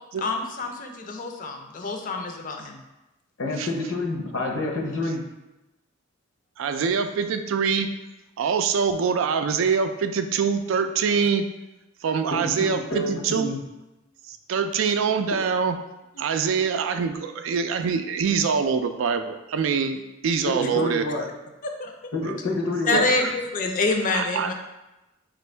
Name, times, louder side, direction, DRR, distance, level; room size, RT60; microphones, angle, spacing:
voice 1, 0.2-2.8 16.2-16.3 20.6-20.7 21.6-21.9 22.9-24.5, left 3 dB, 45° left, 3 dB, 0.5 m, -27 dB
voice 2, 3.4-5.2 12.3-13.6 20.4-21.3 22.1-23.1, left 2 dB, 75° left, -1 dB, 0.8 m, -28 dB
voice 3, 6.6-7.9 8.4-11.5 12.0-13.5 14.3-15.7 16.2-21.1 22.3-22.4 22.9-23.0 24.1-24.5, right 6 dB, 75° right, 8 dB, 0.3 m, -24 dB
4.4 x 2.5 x 3.2 m, 1.0 s
head